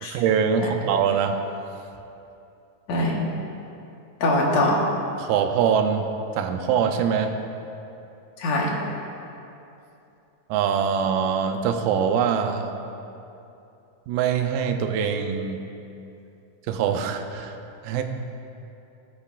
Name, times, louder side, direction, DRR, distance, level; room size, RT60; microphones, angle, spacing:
voice 1, 0.0-1.4 5.2-6.1 6.3-7.4 10.5-12.7 14.1-15.6 16.7-17.5 17.8-18.0, right 7 dB, 85° right, 6 dB, 2.3 m, -23 dB
voice 2, 2.9-3.2 4.2-4.8 8.4-8.7, left 1 dB, 60° left, -2 dB, 2.3 m, -22 dB
16.5 x 8.5 x 2.4 m, 2.8 s
omnidirectional pair, 3.8 m